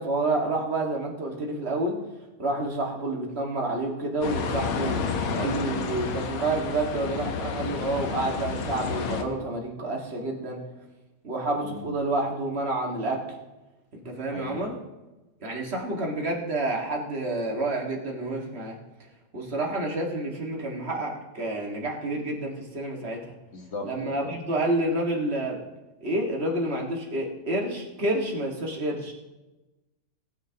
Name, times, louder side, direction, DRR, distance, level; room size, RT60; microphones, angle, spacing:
voice 1, 0.0-2.0 2.4-5.0 5.3-10.6 11.2-13.2 13.9-14.8 15.4-18.8 19.3-23.4 23.8-25.6 26.0-29.1, right 2 dB, 30° right, 0 dB, 1.9 m, -29 dB
sound 1, 4.2-9.2, left 5 dB, 75° left, 1.8 m, -30 dB
voice 2, 14.3-14.8 23.5-24.3, left 2 dB, 40° left, 4 dB, 1.3 m, -38 dB
19.5 x 9.6 x 2.9 m, 1.1 s
omnidirectional pair, 2.3 m